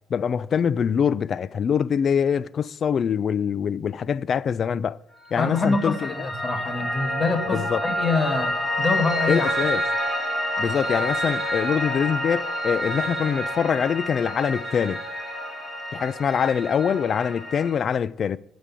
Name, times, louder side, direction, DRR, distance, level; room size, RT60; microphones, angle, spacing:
voice 1, 0.1-5.0 5.3-6.1 7.5-7.8 9.3-9.8 10.6-15.0 15.9-18.4, left 7 dB, 55° left, 0.4 m, -24 dB
Piano, 5.3-17.7, equal, 5° left, 3.3 m, -28 dB
voice 2, 5.4-9.5, left 3 dB, 40° left, 1.9 m, -25 dB
11.0 x 5.2 x 8.4 m
cardioid pair, 90°, 0 cm